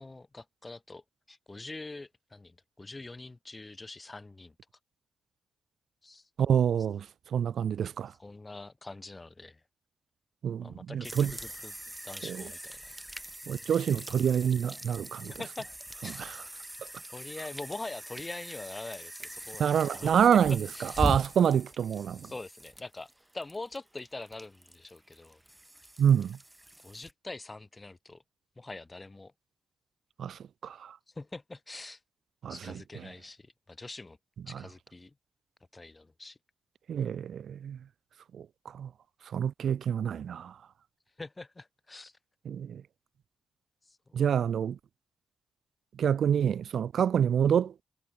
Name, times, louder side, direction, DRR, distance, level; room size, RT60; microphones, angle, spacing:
voice 1, 0.0-4.5 6.0-6.3 8.2-9.6 10.6-11.7 12.0-12.8 15.2-15.7 16.0-16.5 17.1-21.2 22.2-25.4 26.8-28.2 28.6-29.3 31.1-32.0 32.5-34.2 34.5-35.1 35.7-36.4 41.2-42.2 43.9-44.2, left 2 dB, 30° left, 5.9 m, -44 dB
voice 2, 6.4-7.1 7.3-8.1 10.4-11.3 12.2-12.4 13.5-15.3 16.2-16.4 19.6-22.3 26.0-26.4 30.2-31.0 32.4-32.8 34.5-34.6 36.9-37.8 38.3-38.9 39.3-40.6 42.5-42.8 44.1-44.8 46.0-47.7, right 8 dB, 80° right, 0.5 m, -27 dB
sound 1, 11.0-27.1, right 1 dB, 10° right, 2.5 m, -41 dB
supercardioid pair, 50°, 0 cm